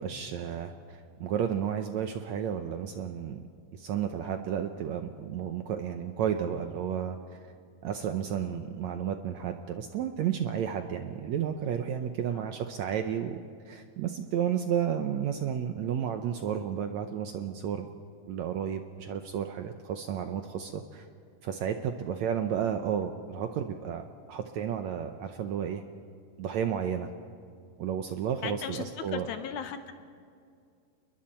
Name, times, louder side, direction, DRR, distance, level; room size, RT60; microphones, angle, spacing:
voice 1, 0.0-3.4 3.7-7.5 7.8-17.9 18.3-21.1 21.4-25.8 26.4-27.1 27.8-29.3, right 8 dB, 75° right, 6 dB, 1.7 m, -32 dB
voice 2, 28.4-29.9, left 8 dB, 70° left, 8 dB, 2.1 m, -37 dB
29.5 x 21.0 x 4.4 m, 2.3 s
omnidirectional pair, 4.0 m